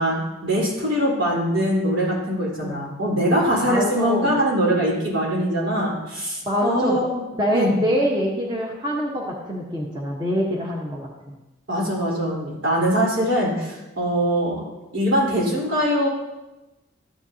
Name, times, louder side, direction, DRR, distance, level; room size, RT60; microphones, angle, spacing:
voice 1, 0.0-7.2 7.5-7.7 11.7-14.6 14.9-16.1, equal, 80° right, -5 dB, 4.2 m, -22 dB
voice 2, 3.6-4.3 5.8-5.9 6.5-11.4, equal, 20° right, -3 dB, 1.2 m, -25 dB
13.5 x 10.5 x 2.9 m, 1.0 s
head